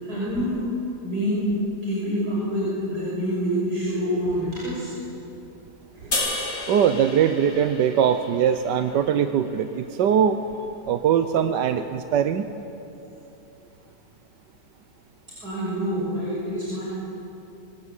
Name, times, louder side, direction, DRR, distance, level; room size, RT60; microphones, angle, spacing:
voice 1, 0.0-0.6 1.0-1.5 1.8-5.0 5.9-6.3 15.4-16.8, equal, 65° right, -7 dB, 6.8 m, -27 dB
sound 1, 6.1-9.4, left 2 dB, 40° left, 3.0 m, -32 dB
voice 2, 6.7-10.4 10.9-12.5, right 8 dB, 85° right, 9 dB, 1.5 m, -21 dB
25.0 x 24.5 x 8.3 m, 2.9 s
omnidirectional pair, 1.8 m